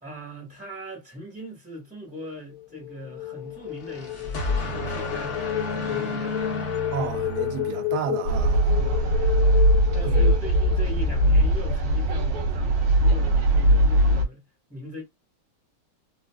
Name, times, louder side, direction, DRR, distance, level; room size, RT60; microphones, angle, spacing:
voice 1, 0.0-5.5 5.9-6.6 8.8-9.1 9.9-14.4 14.7-15.0, equal, 5° right, 0.6 m, -40 dB
sound 1, 2.5-11.4, left 14 dB, 80° left, 1.5 m, -32 dB
sound 2, 3.7-8.2, left 2 dB, 55° left, 0.6 m, -31 dB
voice 2, 6.9-8.7 10.0-10.4, right 8 dB, 70° right, 1.0 m, -32 dB
sound 3, 8.3-14.2, right 1 dB, 85° right, 2.0 m, -20 dB
5.0 x 2.1 x 2.3 m
omnidirectional pair, 2.4 m